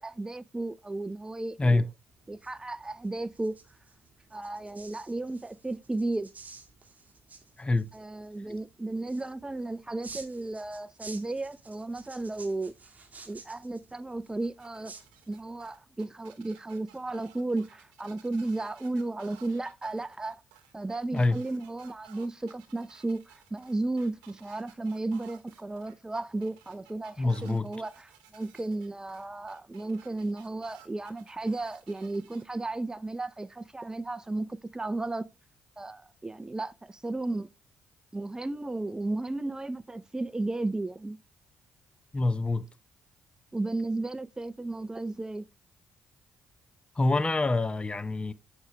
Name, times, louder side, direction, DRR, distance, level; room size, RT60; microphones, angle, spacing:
voice 1, 0.0-1.8 2.3-3.5 4.3-6.3 7.9-12.7 13.3-14.9 15.3-20.4 20.7-35.3 35.8-37.5 38.1-41.2 43.5-45.5, right 2 dB, 15° right, 0.4 m, -34 dB
sound 1, 2.1-15.6, right 4 dB, 35° right, 1.7 m, -52 dB
voice 2, 7.6-7.9 21.1-21.4 27.2-27.7 42.1-42.7 47.0-48.3, left 2 dB, 25° left, 0.7 m, -26 dB
sound 2, 14.4-32.4, right 11 dB, 85° right, 0.8 m, -57 dB
8.1 x 4.9 x 3.2 m
hypercardioid pair, 45°, 4 cm